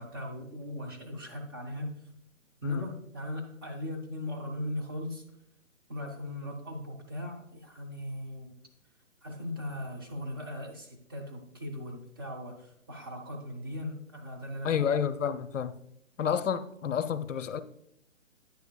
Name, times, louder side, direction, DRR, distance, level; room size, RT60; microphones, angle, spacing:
voice 1, 0.0-1.9 2.6-5.2 5.9-8.5 9.2-14.8, left 1 dB, 20° right, 0.5 m, -38 dB
voice 2, 14.6-15.7 16.2-17.6, left 8 dB, 75° left, 0.6 m, -29 dB
9.3 x 6.5 x 2.3 m
figure-of-eight pair, 145°, 39 cm